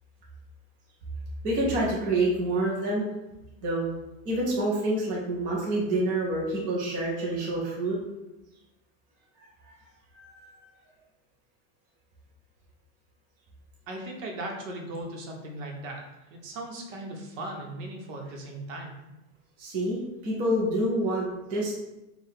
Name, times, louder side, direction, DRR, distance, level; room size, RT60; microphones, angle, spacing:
voice 1, 1.4-3.1 3.6-3.9 4.2-8.0 9.7-9.8 10.1-10.6 19.6-21.7, right 1 dB, 20° right, -4 dB, 0.6 m, -27 dB
voice 2, 13.9-16.0 16.3-19.0, right 1 dB, 65° right, 1 dB, 1.0 m, -38 dB
4.6 x 2.4 x 3.5 m, 0.96 s
supercardioid pair, 165°, 41 cm